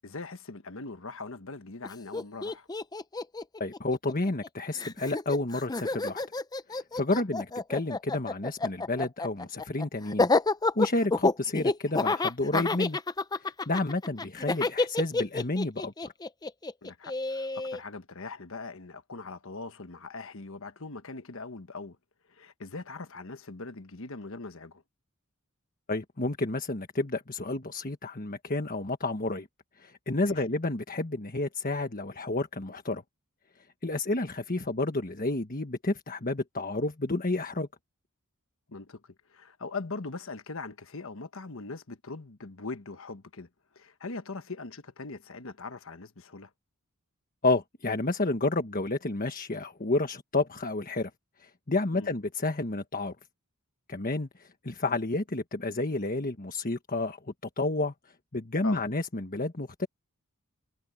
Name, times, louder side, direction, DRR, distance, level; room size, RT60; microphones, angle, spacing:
voice 1, 0.0-2.7 7.1-7.2 16.8-22.0 22.3-24.8 30.2-30.4 38.7-43.5 43.7-46.5 51.9-52.1 58.6-58.8, left 3 dB, 65° left, 1.3 m, -41 dB
Laughter, 1.8-1.9 2.1-4.5 4.8-17.8, left 3 dB, 20° left, 0.6 m, -29 dB
voice 2, 3.6-6.2 6.7-10.3 10.7-13.0 13.4-16.1 25.9-29.5 29.8-33.0 33.8-37.7 47.4-51.1 51.4-53.1 53.9-57.9 58.3-59.9, left 2 dB, 40° left, 1.4 m, -30 dB
head